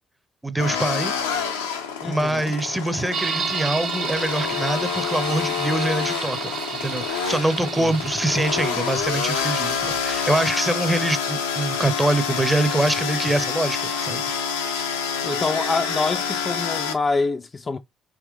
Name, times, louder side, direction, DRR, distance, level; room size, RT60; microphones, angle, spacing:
voice 1, 0.4-1.1 2.0-6.5 6.8-14.2, right 1 dB, 10° right, 0.7 m, -24 dB
sound 1, 0.6-16.9, left 6 dB, 85° left, 0.6 m, -27 dB
voice 2, 2.0-2.5 7.6-7.9 15.2-17.8, left 3 dB, 35° left, 0.4 m, -26 dB
sound 2, 3.1-10.5, right 5 dB, 60° right, 1.0 m, -32 dB
3.6 x 2.9 x 3.5 m
hypercardioid pair, 45°, 0 cm